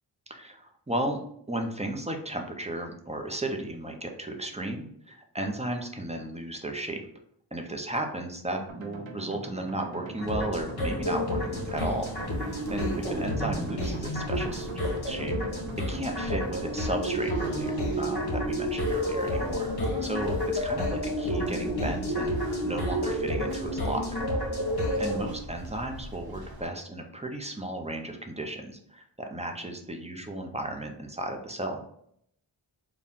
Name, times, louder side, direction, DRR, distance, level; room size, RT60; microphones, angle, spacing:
voice 1, 0.3-1.2 1.5-7.0 7.5-12.1 12.4-14.7 15.0-15.3 15.9-19.7 20.0-22.4 22.6-24.1 25.0-31.8, right 1 dB, 15° right, 3 dB, 0.7 m, -34 dB
sound 1, 8.7-16.7, right 3 dB, 80° right, 0.8 m, -42 dB
sound 2, 10.2-25.3, equal, 55° left, 1.1 m, -30 dB
sound 3, 11.1-26.7, equal, 50° right, 0.8 m, -44 dB
4.1 x 2.3 x 3.5 m, 0.69 s
wide cardioid pair, 55°, 46 cm